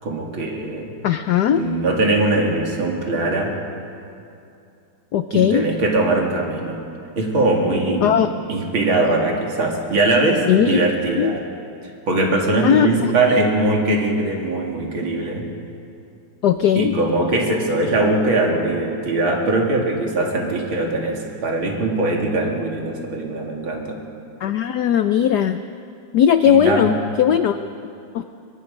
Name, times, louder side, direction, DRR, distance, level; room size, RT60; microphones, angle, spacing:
voice 1, 0.0-0.9 1.5-3.6 5.3-6.8 7.1-8.1 8.5-11.4 12.1-15.4 16.8-24.0 26.4-27.0, right 2 dB, 65° right, 0 dB, 3.3 m, -21 dB
voice 2, 1.0-1.6 5.1-5.7 8.0-8.3 10.5-10.8 11.2-11.3 12.6-13.1 16.4-17.0 24.4-25.6 26.1-27.7 28.1-28.2, left 9 dB, 75° left, 10 dB, 0.9 m, -18 dB
23.5 x 22.0 x 5.3 m, 2.6 s
omnidirectional pair, 2.4 m